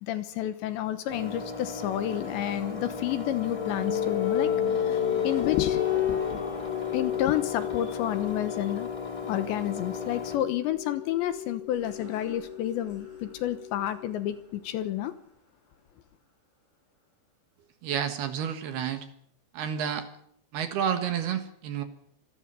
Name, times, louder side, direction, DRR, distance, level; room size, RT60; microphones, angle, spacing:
voice 1, 0.0-4.5 4.8-5.8 6.1-6.4 6.9-8.9 9.3-15.1, left 12 dB, 75° left, 3.1 m, -30 dB
Engine, 1.1-10.4, left 3 dB, 15° left, 1.0 m, -38 dB
sound 1, 2.5-14.0, left 10 dB, 40° left, 2.7 m, -32 dB
sound 2, 11.7-17.0, left 2 dB, 55° left, 9.9 m, -54 dB
voice 2, 17.8-19.1 19.5-20.1 20.5-21.8, right 8 dB, 65° right, 3.1 m, -30 dB
26.5 x 20.5 x 6.9 m
omnidirectional pair, 5.7 m